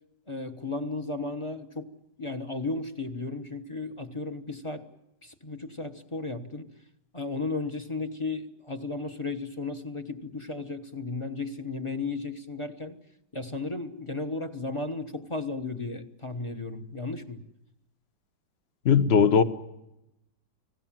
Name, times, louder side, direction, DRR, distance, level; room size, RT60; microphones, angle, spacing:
voice 1, 0.3-1.9 2.2-4.9 5.2-6.7 7.1-13.0 13.3-17.4, left 3 dB, 20° left, 1.0 m, -34 dB
voice 2, 18.8-19.4, left 6 dB, 40° left, 1.1 m, -19 dB
30.0 x 19.0 x 7.5 m
omnidirectional pair, 1.9 m